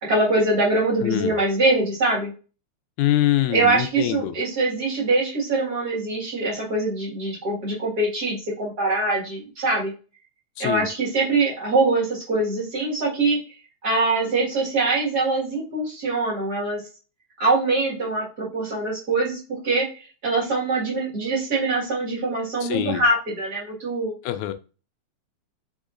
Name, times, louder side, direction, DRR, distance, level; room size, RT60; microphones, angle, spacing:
voice 1, 0.0-2.3 3.5-9.9 10.6-13.4 13.8-16.8 17.4-19.9 20.2-24.1, right 2 dB, 40° right, -5 dB, 1.9 m, -23 dB
voice 2, 1.0-1.4 3.0-4.4 10.6-10.9 22.6-23.0 24.2-24.5, left 14 dB, 85° left, 9 dB, 2.0 m, -24 dB
5.1 x 3.6 x 2.4 m, 0.33 s
omnidirectional pair, 3.4 m